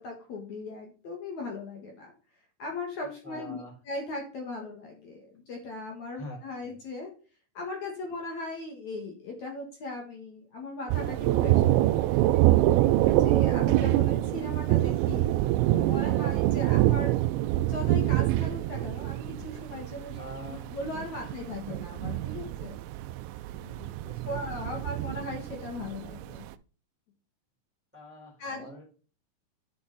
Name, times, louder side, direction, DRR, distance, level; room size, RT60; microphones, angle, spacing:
voice 1, 0.0-2.1 2.6-7.1 7.5-12.6 13.1-15.3 15.7-17.3 17.7-20.2 20.5-22.7 23.6-23.9 24.2-26.5 28.4-28.7, left 2 dB, 60° left, 1 dB, 2.0 m, -38 dB
voice 2, 3.0-3.7 6.2-6.4 6.6-6.7 16.2-16.4 20.2-20.7 21.2-21.3 21.7-21.8 22.3-22.5 23.9-24.8 27.9-28.8, equal, 5° right, -1 dB, 3.4 m, -45 dB
Thunder, 10.9-26.4, right 15 dB, 85° right, 2.6 m, -26 dB
10.5 x 6.5 x 4.1 m, 0.36 s
omnidirectional pair, 5.6 m